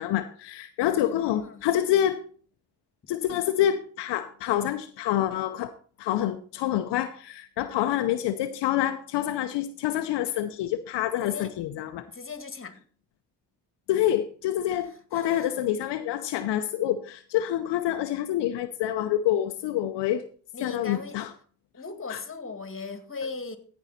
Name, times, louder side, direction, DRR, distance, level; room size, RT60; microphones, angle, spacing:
voice 1, 0.0-2.2 3.1-5.7 6.0-12.1 13.9-20.2 20.6-21.3 22.1-22.2, left 12 dB, 80° left, 0.7 m, -27 dB
voice 2, 1.0-1.6 11.2-11.5 12.1-12.8 14.8-15.5 20.5-21.2 21.7-23.6, left 4 dB, 30° left, 2.1 m, -38 dB
15.5 x 5.4 x 4.2 m
supercardioid pair, 55°, 41 cm